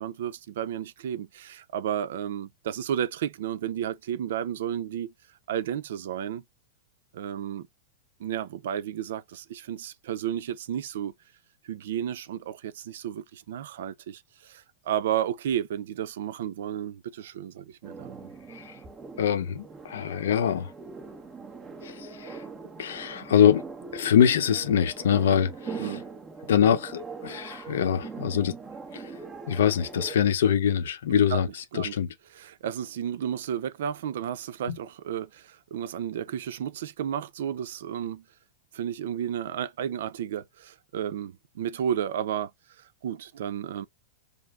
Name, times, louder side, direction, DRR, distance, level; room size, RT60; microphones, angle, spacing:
voice 1, 0.0-5.1 5.5-6.4 7.1-7.7 8.2-11.1 11.6-18.3 25.8-26.0 31.1-31.4 31.7-31.9 32.3-38.2 38.7-42.5 42.8-43.9, right 9 dB, 70° right, 0.6 m, -32 dB
sound 1, 17.8-30.1, right 4 dB, 15° right, 0.9 m, -42 dB
voice 2, 19.2-20.7 21.8-22.4 22.8-23.6 23.9-26.0 26.5-28.5 28.9-29.2 29.5-32.1 34.7-34.8, left 8 dB, 85° left, 0.7 m, -24 dB
5.3 x 2.0 x 3.6 m
supercardioid pair, 170°, 0 cm